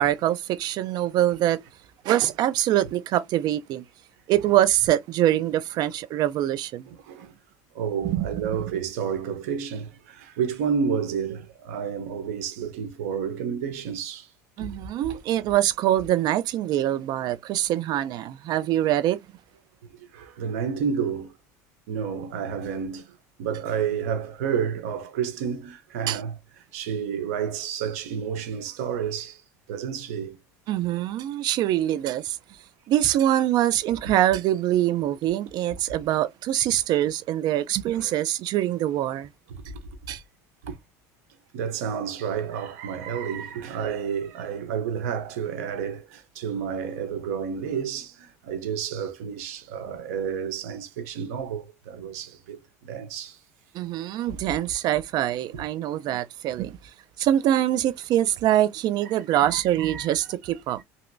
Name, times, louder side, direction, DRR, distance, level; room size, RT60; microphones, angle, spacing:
voice 1, 0.0-1.6 2.0-3.8 4.3-6.9 8.0-8.5 14.6-19.2 26.1-26.2 30.7-32.4 32.9-39.3 40.1-40.2 53.7-56.8 57.2-60.8, right 12 dB, 55° right, 0.5 m, -24 dB
voice 2, 6.9-7.3 7.7-14.3 14.6-15.2 20.0-21.3 21.9-26.4 26.7-29.4 29.7-30.4 37.9-38.1 39.5-39.7 40.6-40.8 41.5-52.6 52.8-53.4 54.3-54.6 55.5-55.6 59.3-60.2, right 7 dB, 85° right, 0.8 m, -30 dB
3.0 x 2.8 x 2.6 m
supercardioid pair, 100°, 8 cm